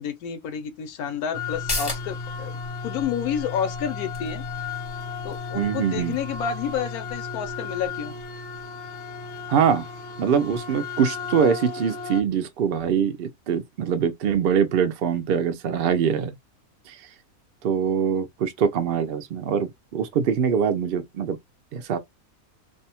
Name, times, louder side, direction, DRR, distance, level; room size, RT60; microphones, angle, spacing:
voice 1, 0.0-4.4 5.2-8.1, left 8 dB, 85° left, 1.1 m, -30 dB
sound 1, 1.3-12.2, left 5 dB, 65° left, 0.7 m, -34 dB
sound 2, 1.5-8.6 9.0-9.1, left 2 dB, 25° left, 0.6 m, -38 dB
voice 2, 5.5-6.2 9.5-9.8 10.2-16.4 16.9-17.0 17.6-21.4 21.7-22.0, right 7 dB, 75° right, 0.5 m, -23 dB
2.6 x 2.1 x 2.8 m
omnidirectional pair, 1.5 m